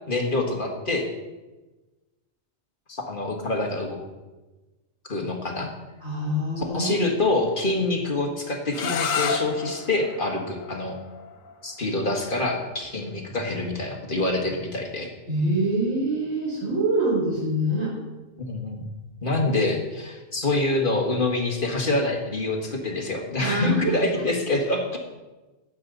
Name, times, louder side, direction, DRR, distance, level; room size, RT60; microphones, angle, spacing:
voice 1, 0.1-1.1 2.9-4.0 5.1-5.7 6.6-11.0 11.6-15.1 18.4-18.9 19.2-25.0, left 2 dB, 40° left, 1 dB, 1.8 m, -26 dB
voice 2, 6.0-7.0 15.3-17.9 23.4-24.2, right 1 dB, 80° right, -6 dB, 3.7 m, -25 dB
sound 1, 8.7-14.4, left 6 dB, 90° left, 1.2 m, -33 dB
17.0 x 7.3 x 4.0 m, 1.1 s
omnidirectional pair, 1.3 m